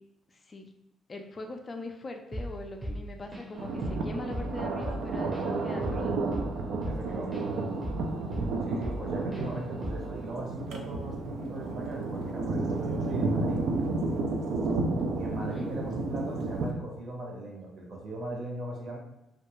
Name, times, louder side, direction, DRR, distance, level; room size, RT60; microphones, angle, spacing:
voice 1, 0.3-0.7 1.1-6.2 15.3-15.7, left 2 dB, 35° left, 4 dB, 0.3 m, -41 dB
Drum kit / Drum, 2.3-2.6 2.8-3.6 3.8-4.1 4.3-7.5 7.8-9.1 9.3-9.5 9.8-10.2, equal, 15° right, 0.6 m, -36 dB
Thunder, 3.5-16.7, right 3 dB, 80° right, 0.3 m, -31 dB
voice 2, 6.9-7.5 8.7-13.6 15.1-19.0, right 1 dB, 55° right, -1 dB, 0.8 m, -39 dB
2.3 x 2.2 x 3.0 m, 0.91 s
cardioid pair, 90°, 0 cm